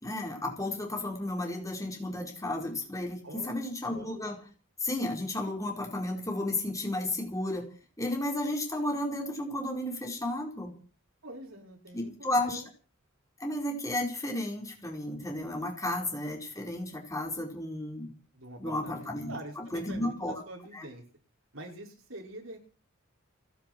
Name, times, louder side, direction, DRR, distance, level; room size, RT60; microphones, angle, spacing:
voice 1, 0.0-4.4 4.8-7.7 8.0-10.7 11.9-12.6 13.4-18.1 18.6-20.4 20.7-20.9, left 1 dB, 15° left, 1 dB, 4.3 m, -33 dB
voice 2, 3.2-3.6 3.9-4.2 11.2-12.7 18.3-21.0 21.5-22.6, right 1 dB, 75° right, 0 dB, 5.7 m, -45 dB
30.0 x 10.5 x 4.6 m, 0.37 s
head